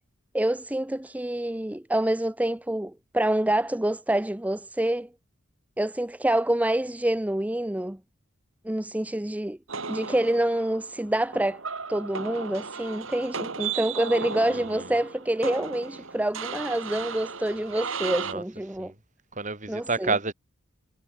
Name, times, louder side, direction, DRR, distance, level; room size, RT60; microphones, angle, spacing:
voice 1, 0.3-5.1 5.8-8.0 8.6-9.6 9.9-11.6 11.9-18.9 19.7-20.1, right 1 dB, 5° right, 0.5 m, -27 dB
sound 1, 9.7-18.3, right 5 dB, 70° right, 3.0 m, -35 dB
voice 2, 14.5-14.9 18.2-18.4 18.7-19.0 19.3-20.3, right 4 dB, 35° right, 4.2 m, -30 dB
head